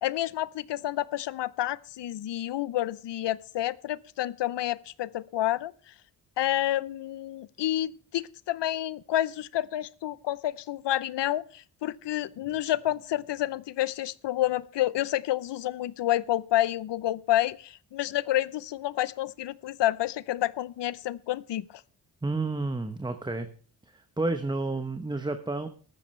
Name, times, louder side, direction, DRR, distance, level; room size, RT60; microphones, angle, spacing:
voice 1, 0.0-5.7 6.4-21.6, left 13 dB, 70° left, 0.7 m, -29 dB
voice 2, 22.2-23.5 23.9-25.7, right 2 dB, 10° right, 0.9 m, -30 dB
14.0 x 13.0 x 3.2 m
wide cardioid pair, 130°, 44 cm